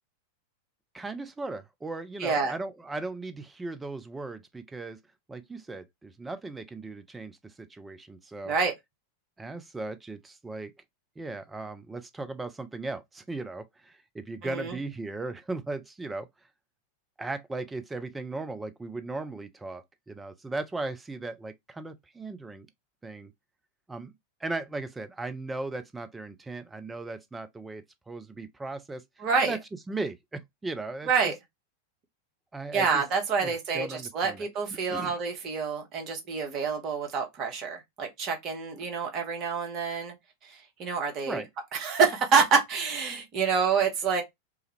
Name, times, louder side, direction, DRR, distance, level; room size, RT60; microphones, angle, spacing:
voice 1, 0.9-5.0 5.3-8.5 9.4-10.7 11.2-16.3 17.2-22.7 23.0-23.3 23.9-24.1 24.4-29.0 29.4-29.6 29.9-31.3 32.5-33.0 33.4-34.5 34.9-35.2 41.3-41.5, right 2 dB, 10° right, 0.4 m, -37 dB
voice 2, 2.2-2.5 8.5-8.7 14.4-14.8 29.2-29.6 31.1-31.3 32.7-40.1 40.4-41.4 41.7-44.2, right 5 dB, 35° right, 0.8 m, -27 dB
2.3 x 2.0 x 2.9 m
figure-of-eight pair, 90°, 0 cm